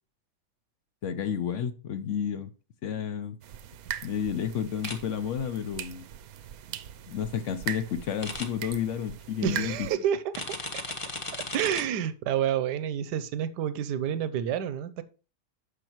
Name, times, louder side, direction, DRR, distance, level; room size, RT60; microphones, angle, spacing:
voice 1, 1.0-2.5 2.8-3.4 4.0-6.1 7.1-9.9, left 8 dB, 60° left, 0.8 m, -31 dB
sound 1, 3.4-10.0, right 10 dB, 70° right, 1.0 m, -40 dB
sound 2, 4.8-5.0 8.2-8.5 10.3-11.8, left 2 dB, 25° left, 0.9 m, -35 dB
voice 2, 9.4-10.8 11.5-15.0, right 9 dB, 85° right, 1.3 m, -29 dB
9.8 x 6.7 x 3.0 m
omnidirectional pair, 1.7 m